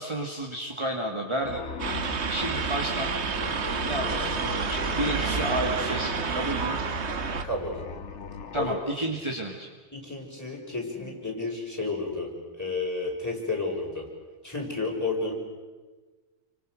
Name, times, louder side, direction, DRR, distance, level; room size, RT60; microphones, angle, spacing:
voice 1, 0.0-1.6 2.3-3.1 3.8-6.8 8.5-9.7, right 1 dB, 25° right, 1 dB, 2.1 m, -31 dB
sound 1, 1.4-8.8, left 5 dB, 70° left, 1.4 m, -39 dB
sound 2, 1.8-7.4, right 5 dB, 65° right, 1.5 m, -29 dB
voice 2, 7.4-7.8 8.5-8.8 9.9-14.1 14.4-15.3, left 3 dB, 15° left, -1 dB, 5.9 m, -31 dB
29.0 x 25.5 x 6.5 m, 1.3 s
omnidirectional pair, 1.3 m